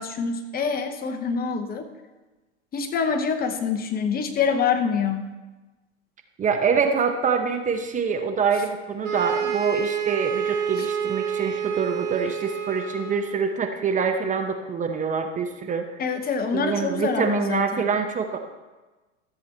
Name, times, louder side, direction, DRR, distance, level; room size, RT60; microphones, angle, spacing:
voice 1, 0.0-1.9 2.7-5.3 10.8-10.9 16.0-17.9, left 5 dB, 25° left, 8 dB, 0.9 m, -26 dB
voice 2, 6.4-15.9 16.5-18.4, right 6 dB, 20° right, 6 dB, 0.9 m, -25 dB
sound 1, 9.0-13.4, right 8 dB, 85° right, 2.1 m, -28 dB
13.5 x 7.7 x 4.4 m, 1.2 s
hypercardioid pair, 110°, 37 cm